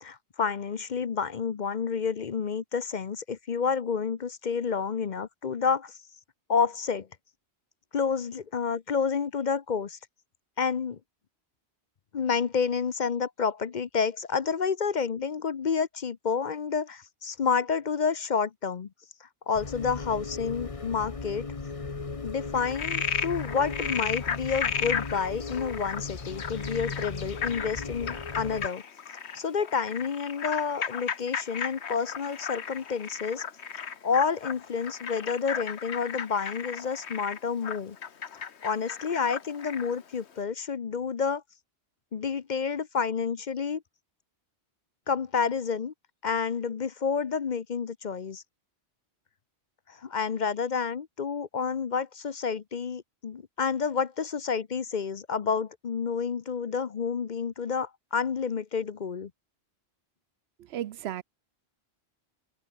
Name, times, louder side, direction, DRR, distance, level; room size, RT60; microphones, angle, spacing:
voice 1, 0.0-6.0 6.5-7.1 7.9-10.0 10.6-11.0 12.1-18.9 19.5-21.5 22.2-28.8 29.3-33.4 33.8-38.0 38.3-41.4 42.1-43.8 45.1-45.9 46.2-48.4 49.9-59.3, left 6 dB, 45° left, 0.8 m, -29 dB
sound 1, 19.5-28.7, left 4 dB, 30° left, 1.2 m, -37 dB
Frog, 22.5-40.0, left 7 dB, 75° left, 1.4 m, -35 dB
voice 2, 60.6-61.2, right 11 dB, 70° right, 0.8 m, -34 dB
omnidirectional pair, 1.1 m